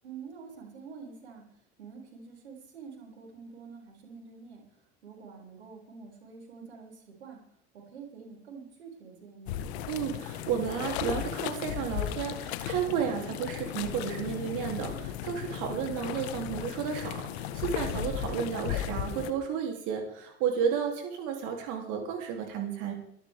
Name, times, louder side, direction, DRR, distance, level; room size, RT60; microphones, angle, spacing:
voice 1, 0.0-7.4 7.7-9.6, right 5 dB, 85° right, -1 dB, 6.7 m, -47 dB
sound 1, 9.5-19.3, left 11 dB, 75° left, 1.6 m, -35 dB
voice 2, 9.9-22.9, right 7 dB, 65° right, 2 dB, 3.3 m, -32 dB
24.5 x 14.0 x 3.6 m, 0.72 s
hypercardioid pair, 65°, 33 cm